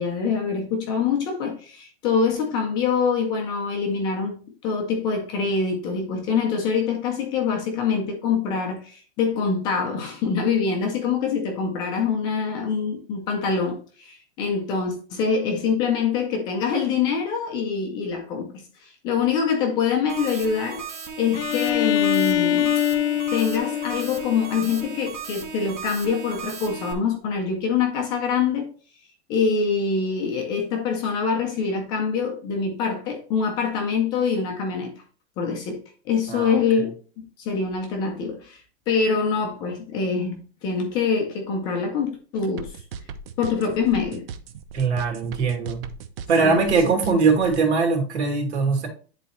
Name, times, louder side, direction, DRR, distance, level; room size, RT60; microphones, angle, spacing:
voice 1, 0.0-20.8 21.2-22.8 23.3-28.7 29.3-34.9 35.4-42.8 43.4-44.2 46.4-46.6, left 5 dB, 15° left, 0.5 m, -25 dB
sound 1, 20.1-26.9, right 6 dB, 20° right, 0.7 m, -36 dB
Bowed string instrument, 21.3-25.1, left 11 dB, 90° left, 0.6 m, -24 dB
voice 2, 36.3-36.6 44.7-45.8 46.3-48.9, right 4 dB, 85° right, 2.6 m, -21 dB
sound 2, 42.6-47.6, right 6 dB, 60° right, 0.8 m, -37 dB
10.0 x 4.1 x 3.0 m
supercardioid pair, 175°, 33 cm